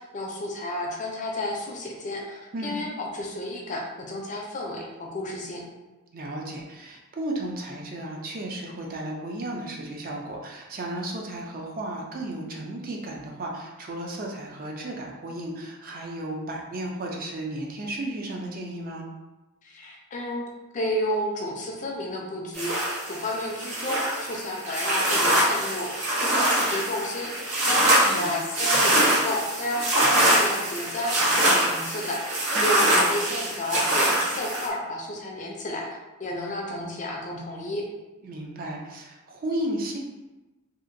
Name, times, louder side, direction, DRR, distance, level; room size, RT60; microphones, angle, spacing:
voice 1, 0.0-5.6 19.6-20.5 20.7-32.2 32.6-37.9, left 1 dB, 35° left, 0 dB, 0.4 m, -32 dB
voice 2, 6.1-19.0 27.9-28.3 32.6-32.9 38.2-40.0, right 1 dB, 40° right, 0 dB, 0.4 m, -34 dB
sound 1, 22.5-34.7, right 1 dB, 90° right, 0.8 m, -23 dB
2.7 x 2.4 x 2.5 m, 1.1 s
head